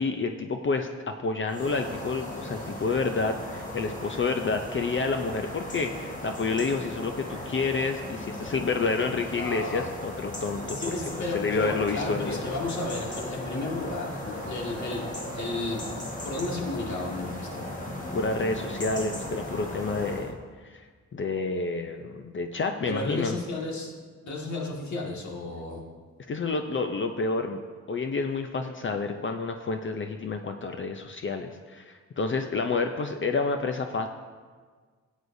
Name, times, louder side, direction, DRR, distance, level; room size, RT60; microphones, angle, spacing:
voice 1, 0.0-10.8 11.3-12.4 18.1-20.4 20.7-20.9 21.1-23.4 26.3-27.6 27.9-34.1, left 4 dB, 45° left, 5 dB, 0.5 m, -29 dB
sound 1, 1.5-20.3, left 1 dB, 25° left, 1.4 m, -37 dB
voice 2, 9.1-9.9 10.7-15.8 16.2-17.6 22.9-23.9 24.2-25.8, left 2 dB, 70° left, -2 dB, 1.9 m, -33 dB
17.0 x 8.1 x 2.6 m, 1.5 s
wide cardioid pair, 140°, 29 cm